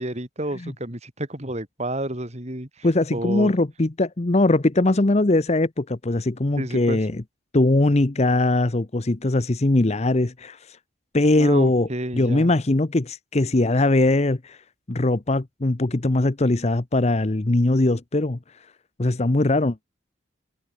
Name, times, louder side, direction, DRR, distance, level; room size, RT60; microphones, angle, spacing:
voice 1, 0.0-3.5 6.6-7.0 11.3-12.5, right 1 dB, 35° right, 3.3 m, -30 dB
voice 2, 2.8-7.2 7.5-10.8 11.1-11.9 12.1-14.6 14.9-18.4 19.0-19.8, left 2 dB, 35° left, 0.8 m, -21 dB
head